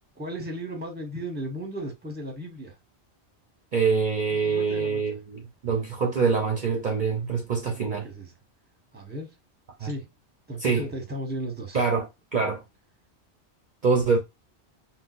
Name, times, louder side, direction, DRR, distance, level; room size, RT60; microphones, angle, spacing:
voice 1, 0.1-2.8 4.3-5.0 7.6-8.3 8.9-9.4 9.8-10.1 10.5-11.8, right 1 dB, 10° right, 0.8 m, -35 dB
voice 2, 3.7-8.1 9.8-9.9 10.6-10.8 11.7-12.6 13.8-14.2, right 5 dB, 50° right, 0.6 m, -25 dB
3.9 x 2.1 x 2.4 m
omnidirectional pair, 1.2 m